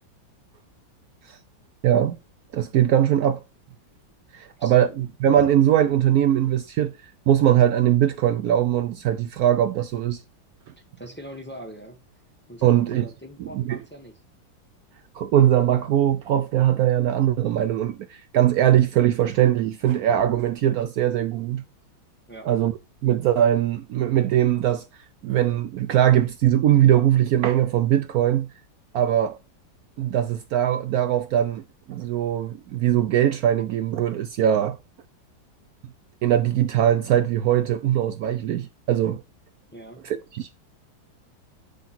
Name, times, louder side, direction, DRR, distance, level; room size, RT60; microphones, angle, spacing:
voice 1, 1.8-2.2 2.5-3.4 4.3-10.2 12.6-13.1 13.4-13.8 15.1-21.6 22.4-22.7 23.0-24.8 25.2-28.5 28.9-29.4 30.0-31.6 31.9-34.8 36.2-39.2 40.0-40.5, right 11 dB, 85° right, 0.8 m, -21 dB
voice 2, 4.6-5.0 11.0-12.0 12.5-14.2 22.3-22.5 39.7-40.1, right 1 dB, 10° left, 0.6 m, -41 dB
7.7 x 3.6 x 4.2 m
omnidirectional pair, 2.1 m